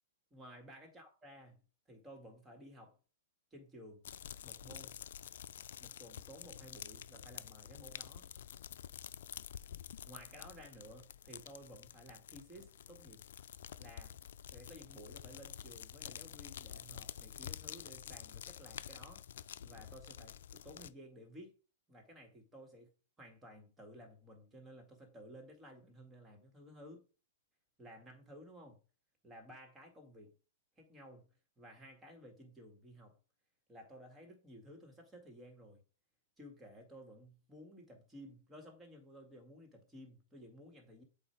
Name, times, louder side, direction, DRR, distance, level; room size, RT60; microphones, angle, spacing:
voice 1, 0.3-1.6 1.9-3.0 3.5-4.0 4.4-5.0 5.8-8.3 10.1-13.2 13.8-14.2 14.5-19.2 19.6-21.5 21.9-22.9 23.2-27.0 27.8-28.8 29.2-30.3 30.8-33.2 33.7-35.8 36.4-41.0, equal, 15° right, 1.9 m, -55 dB
sound 1, 4.0-20.9, left 9 dB, 70° left, 0.4 m, -49 dB
8.1 x 2.7 x 4.5 m
hypercardioid pair, 130°, 0 cm